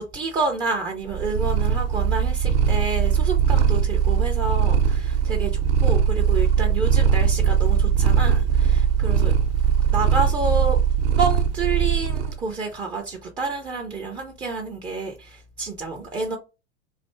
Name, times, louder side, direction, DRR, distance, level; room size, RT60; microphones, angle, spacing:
voice 1, 0.0-9.3 9.9-10.8 11.2-16.4, right 3 dB, 10° right, 0.3 m, -29 dB
Purr, 1.1-12.4, right 8 dB, 55° right, 0.7 m, -20 dB
3.2 x 2.5 x 4.3 m
figure-of-eight pair, 90°, 35 cm